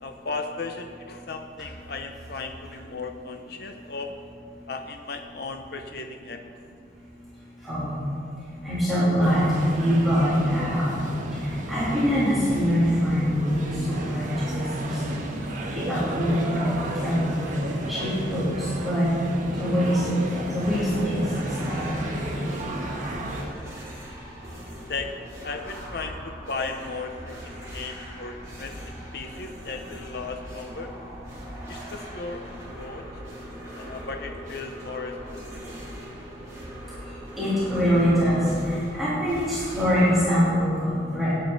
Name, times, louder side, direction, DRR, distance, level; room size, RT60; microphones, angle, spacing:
voice 1, 0.0-4.1 4.7-6.4 24.9-30.9 31.7-33.1 33.7-35.8, left 4 dB, 55° left, 5 dB, 0.7 m, -36 dB
voice 2, 7.6-8.0 8.6-9.5 9.7-10.9 11.7-13.4 13.9-14.9 15.7-17.4 17.9-19.1 19.6-20.0 20.3-21.2 21.7-21.8 37.4-41.3, equal, ahead, -12 dB, 3.2 m, -24 dB
sound 1, 9.2-23.4, right 1 dB, 45° right, 1.5 m, -32 dB
sound 2, 20.6-40.3, equal, 15° right, 2.8 m, -41 dB
16.5 x 10.0 x 4.0 m, 2.4 s
head